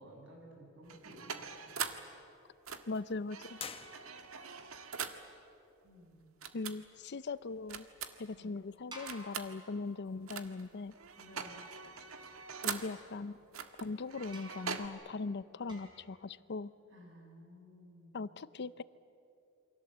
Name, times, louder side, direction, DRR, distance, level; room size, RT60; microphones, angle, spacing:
voice 1, 0.0-1.8 2.1-2.2 5.8-6.3 8.3-8.6 11.2-11.7 15.6-15.8 16.9-18.2, equal, 65° right, 0 dB, 8.0 m, -55 dB
everything should be recorded. broken tape recorder, 0.8-2.1 2.6-5.3 6.4-6.8 7.7-8.3 9.1-9.5 10.3-10.7 10.9-13.0 13.5-14.9, right 6 dB, 80° right, 1.6 m, -42 dB
voice 2, 2.9-3.6 6.5-7.9 8.2-10.9 12.6-13.4 13.8-16.7 18.1-18.8, left 3 dB, 55° left, 16 dB, 0.6 m, -40 dB
sound 1, 3.5-4.6, left 6 dB, 25° left, 1.1 m, -47 dB
sound 2, 8.9-10.3 12.8-13.7 14.3-14.8 15.7-16.2, right 1 dB, 20° right, 4.6 m, -53 dB
28.5 x 24.5 x 8.1 m, 2.6 s
head